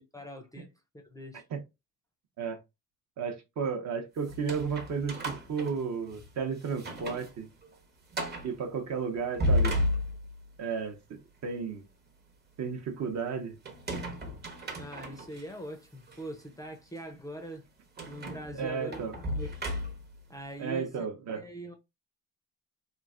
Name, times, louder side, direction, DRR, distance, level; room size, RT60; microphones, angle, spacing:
voice 1, 0.1-0.7 0.9-1.4 14.7-17.7 18.1-19.7 20.3-21.1 21.4-21.8, right 1 dB, 10° left, 0.5 m, -42 dB
voice 2, 3.2-7.5 8.4-9.8 10.6-11.8 12.6-13.6 18.5-19.1 20.6-21.4, right 6 dB, 55° right, 0.8 m, -33 dB
sound 1, 4.2-6.3 6.7-7.3 7.6-7.7 8.1-8.5 9.2-10.5 13.7-15.4 16.1-16.2 18.0-20.2, left 1 dB, 30° right, 0.8 m, -33 dB
3.1 x 2.4 x 2.4 m
cardioid pair, 110°, 34 cm